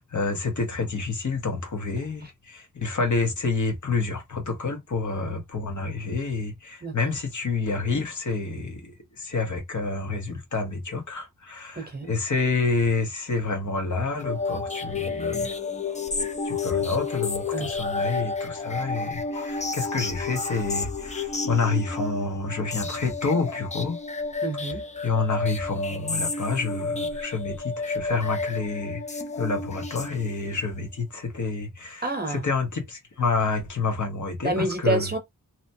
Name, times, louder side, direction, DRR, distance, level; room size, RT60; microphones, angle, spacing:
voice 1, 0.0-8.9 9.2-15.5 16.4-24.0 25.0-35.1, left 4 dB, 60° left, 1.0 m, -28 dB
voice 2, 6.8-7.2 11.8-12.1 17.5-17.7 24.4-24.8 32.0-32.5 34.4-35.2, right 2 dB, 30° right, 0.8 m, -28 dB
sound 1, 14.2-30.6, left 4 dB, 20° left, 0.4 m, -31 dB
2.9 x 2.1 x 2.7 m
wide cardioid pair, 100°, 33 cm